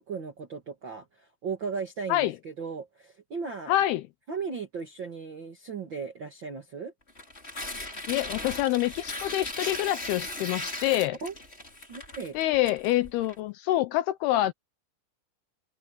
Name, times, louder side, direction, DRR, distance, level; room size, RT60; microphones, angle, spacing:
voice 1, 0.0-3.7 4.3-6.9 11.2-11.3 11.9-12.4, right 5 dB, 60° right, 1.2 m, -36 dB
voice 2, 3.7-4.0 8.1-11.2 12.4-14.5, left 15 dB, 85° left, 2.3 m, -26 dB
Tearing, 7.1-13.3, left 2 dB, 15° left, 5.1 m, -38 dB
open air
omnidirectional pair, 5.3 m